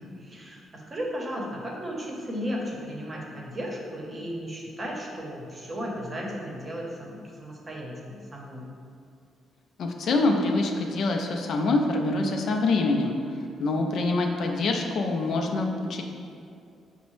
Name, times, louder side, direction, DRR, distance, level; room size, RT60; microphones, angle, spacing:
voice 1, 0.0-8.7, equal, 30° right, -2 dB, 0.7 m, -35 dB
voice 2, 9.8-16.0, left 2 dB, 65° left, 2 dB, 0.4 m, -25 dB
5.2 x 2.0 x 3.1 m, 2.4 s
cardioid pair, 90°, 0 cm